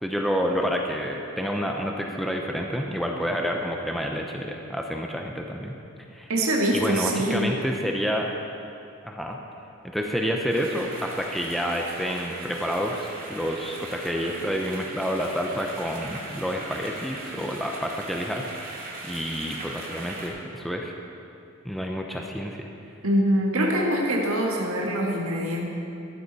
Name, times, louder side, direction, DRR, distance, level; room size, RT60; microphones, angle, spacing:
voice 1, 0.0-5.7 6.1-6.3 6.7-8.3 9.0-9.4 9.8-18.5 19.0-20.9 21.6-22.7, equal, ahead, 1 dB, 0.7 m, -29 dB
voice 2, 6.3-7.5 23.0-25.7, right 1 dB, 75° right, -2 dB, 1.8 m, -24 dB
sound 1, 10.5-20.3, right 2 dB, 40° right, 2.3 m, -39 dB
14.0 x 12.0 x 4.2 m, 2.7 s
head